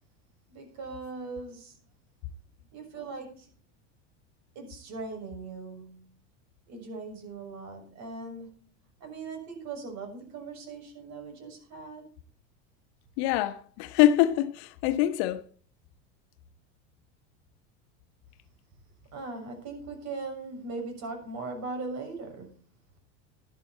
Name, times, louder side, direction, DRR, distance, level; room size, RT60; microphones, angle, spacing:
voice 1, 0.5-1.8 2.7-3.5 4.5-6.1 6.7-8.7 9.0-12.1 19.1-22.5, right 3 dB, 50° right, 6.5 m, -39 dB
voice 2, 13.2-15.5, left 13 dB, 65° left, 1.2 m, -24 dB
13.0 x 11.0 x 4.3 m
supercardioid pair, 105°, 35 cm